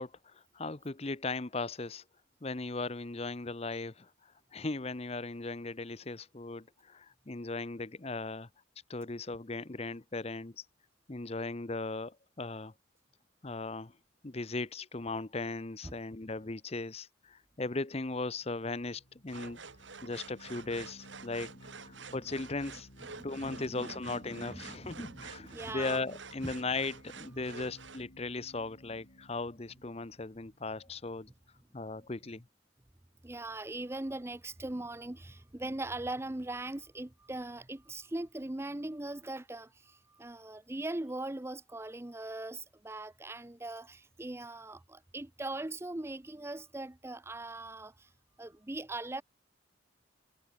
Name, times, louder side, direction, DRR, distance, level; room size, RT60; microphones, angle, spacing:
voice 1, 0.0-2.0 2.4-4.1 4.5-8.5 8.9-10.6 11.1-12.7 13.4-13.9 14.2-19.6 20.0-21.5 22.1-22.9 23.2-31.3 31.7-32.4, left 3 dB, 30° left, 0.8 m, -38 dB
sound 1, 18.3-31.4, equal, 60° left, 7.6 m, -56 dB
sound 2, 19.3-28.0, right 5 dB, 70° right, 3.0 m, -49 dB
voice 2, 23.2-23.9 24.2-26.0 33.2-48.1 48.4-49.2, right 2 dB, 15° right, 0.5 m, -40 dB
head